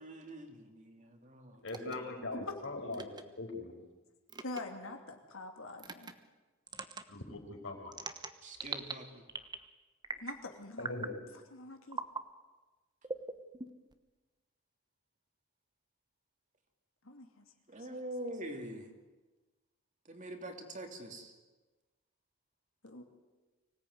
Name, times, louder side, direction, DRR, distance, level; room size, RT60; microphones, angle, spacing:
voice 1, 0.0-2.2 8.4-9.2 17.7-18.9 20.0-21.3, right 1 dB, 35° right, 4 dB, 2.9 m, -45 dB
voice 2, 1.6-3.0 3.4-3.7 7.1-7.9 10.8-11.1, left 2 dB, 60° left, 2 dB, 5.0 m, -40 dB
sound 1, 1.7-2.0 2.9-3.2 4.3-4.6 5.8-6.1 6.7-7.0 7.9-8.9 9.3-9.7 10.0-10.4 10.8-11.2 11.9-12.2 13.0-13.9, right 4 dB, 20° right, 1.1 m, -41 dB
voice 3, 4.4-6.1 10.2-11.1 11.5-12.0 17.0-17.3 22.8-23.0, left 2 dB, 75° left, 4 dB, 2.8 m, -44 dB
24.5 x 17.5 x 9.5 m, 1.2 s
head